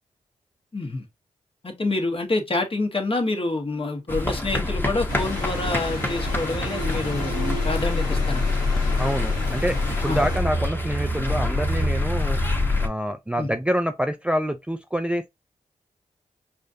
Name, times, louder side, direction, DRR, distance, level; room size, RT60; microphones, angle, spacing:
voice 1, 0.7-1.1 1.6-8.4 10.1-10.2 13.4-13.5, left 2 dB, 40° left, 1.4 m, -27 dB
sound 1, 4.1-12.9, left 2 dB, 15° left, 1.3 m, -25 dB
sound 2, 5.1-10.4, left 2 dB, 90° left, 1.0 m, -34 dB
sound 3, 6.3-7.9, right 11 dB, 70° right, 1.0 m, -41 dB
voice 2, 9.0-9.8 10.0-12.4 12.8-15.3, equal, 10° right, 0.4 m, -26 dB
4.9 x 2.5 x 2.6 m
supercardioid pair, 40°, 15 cm